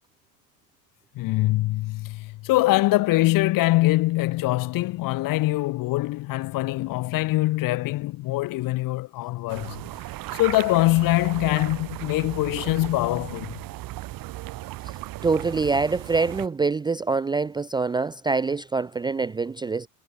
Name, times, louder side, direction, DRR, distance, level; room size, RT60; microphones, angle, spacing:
voice 1, 1.2-9.8 10.3-13.6, left 18 dB, 45° left, 1.8 m, -23 dB
sound 1, 9.5-16.5, right 17 dB, 50° right, 5.0 m, -36 dB
voice 2, 15.2-19.9, right 4 dB, 10° right, 0.6 m, -25 dB
supercardioid pair, 140°, 44 cm